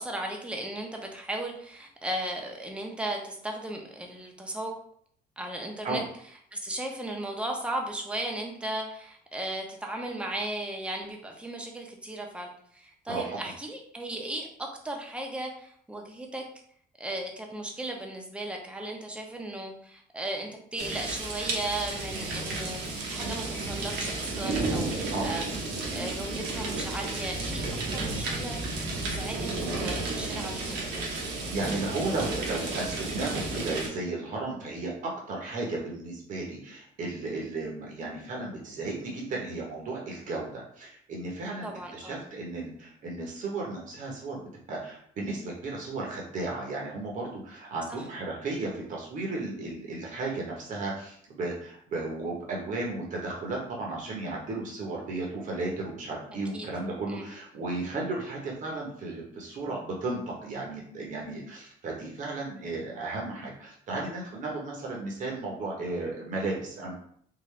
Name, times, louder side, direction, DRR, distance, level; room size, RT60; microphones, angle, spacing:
voice 1, 0.0-4.7 5.4-6.0 6.5-16.5 17.0-25.4 25.9-27.6 27.9-31.0 41.6-42.2 47.9-48.0 56.3-56.7 57.1-57.3, right 1 dB, 5° right, 1 dB, 0.7 m, -36 dB
sound 1, 20.8-33.9, right 3 dB, 75° right, 1.1 m, -32 dB
voice 2, 31.5-66.9, right 2 dB, 50° right, -2 dB, 1.0 m, -34 dB
3.7 x 2.5 x 3.2 m, 0.63 s
cardioid pair, 110°, 17 cm